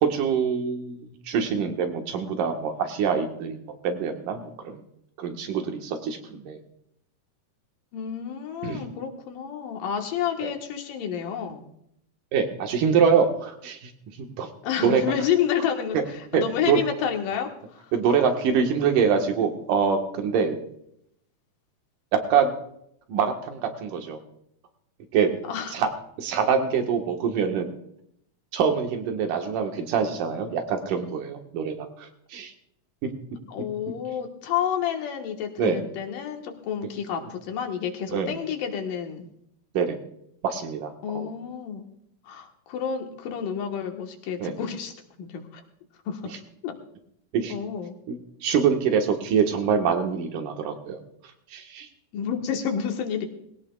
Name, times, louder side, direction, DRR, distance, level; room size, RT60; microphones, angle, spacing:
voice 1, 0.0-3.6 3.8-4.8 5.2-6.6 8.6-8.8 10.4-10.5 12.3-13.9 14.4-14.5 14.8-15.0 15.9-16.0 16.3-16.8 17.9-20.6 22.3-22.5 23.1-24.2 25.1-25.3 25.7-25.9 26.2-27.7 28.5-31.9 32.3-32.5 35.6-35.8 38.1-38.3 39.7-40.0 40.4-41.3 44.4-44.5 47.3-47.5 48.1-48.2 48.4-51.0 51.5-51.9, right 6 dB, 75° right, 4 dB, 3.0 m, -24 dB
voice 2, 7.9-11.6 14.6-17.9 25.4-25.8 33.5-39.3 41.0-41.9 42.2-44.9 45.2-45.4 46.1-46.4 46.6-46.8 47.5-47.9 52.1-53.3, left 8 dB, 80° left, 3 dB, 3.1 m, -29 dB
21.0 x 17.0 x 2.4 m, 0.74 s
omnidirectional pair, 3.8 m